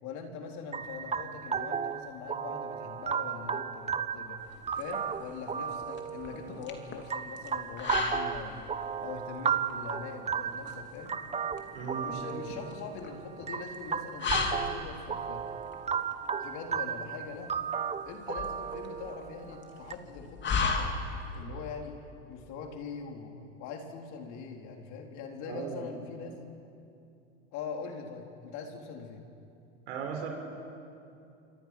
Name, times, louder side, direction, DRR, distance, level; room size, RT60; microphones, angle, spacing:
voice 1, 0.0-11.2 12.0-15.6 16.4-17.5 18.0-20.9 21.3-26.4 27.5-29.2, left 5 dB, 55° left, 3 dB, 3.6 m, -42 dB
sound 1, 0.7-19.9, right 7 dB, 20° right, 1.0 m, -35 dB
sound 2, 4.4-21.4, left 5 dB, 30° left, 3.0 m, -37 dB
voice 2, 11.7-12.1 25.4-25.8 29.9-30.3, right 7 dB, 75° right, 2 dB, 5.7 m, -37 dB
27.5 x 24.5 x 6.0 m, 2.6 s
hypercardioid pair, 90°, 34 cm